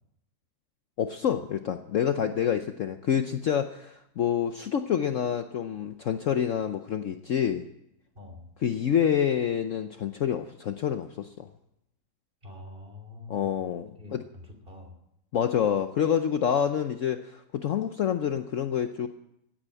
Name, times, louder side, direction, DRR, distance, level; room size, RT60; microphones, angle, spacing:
voice 1, 1.0-7.6 8.6-11.5 13.3-14.2 15.3-19.1, left 8 dB, 60° left, 8 dB, 0.9 m, -27 dB
voice 2, 8.1-8.5 12.4-13.6 14.0-15.0, left 2 dB, 30° right, 4 dB, 3.3 m, -45 dB
16.0 x 9.1 x 9.8 m, 0.81 s
omnidirectional pair, 1.8 m